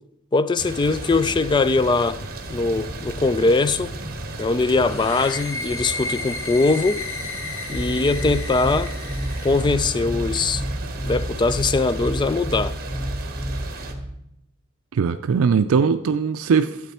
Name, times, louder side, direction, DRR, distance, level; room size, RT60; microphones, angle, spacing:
voice 1, 0.3-2.2 2.5-3.9 4.4-7.0 7.7-8.9 9.4-10.6 11.0-12.8, left 3 dB, 20° left, 0.3 m, -21 dB
sound 1, 0.6-13.9, right 2 dB, 45° right, 1.3 m, -35 dB
sound 2, 4.8-9.7, left 4 dB, 70° left, 1.1 m, -33 dB
sound 3, 7.7-14.1, equal, 5° left, 1.1 m, -29 dB
voice 2, 14.9-16.9, right 5 dB, 85° right, 0.4 m, -20 dB
12.5 x 7.9 x 4.3 m
head